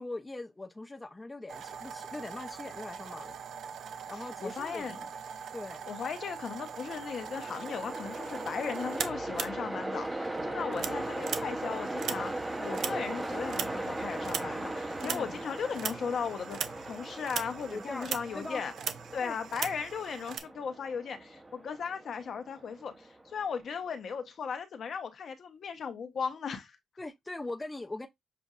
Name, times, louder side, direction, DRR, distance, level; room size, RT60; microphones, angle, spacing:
voice 1, 0.0-3.4 3.9-5.0 5.5-5.9 15.0-15.3 17.7-18.6 19.2-19.4 27.0-28.1, left 2 dB, 15° left, 0.6 m, -41 dB
sound 1, 1.5-10.1 10.4-20.4, right 7 dB, 70° right, 0.5 m, -41 dB
voice 2, 4.2-5.1 5.9-12.3 12.6-18.7 19.1-26.8, left 6 dB, 55° left, 0.9 m, -37 dB
Train, 6.5-23.7, right 1 dB, 15° right, 0.8 m, -39 dB
6.7 x 2.6 x 2.4 m
cardioid pair, 100°, 0 cm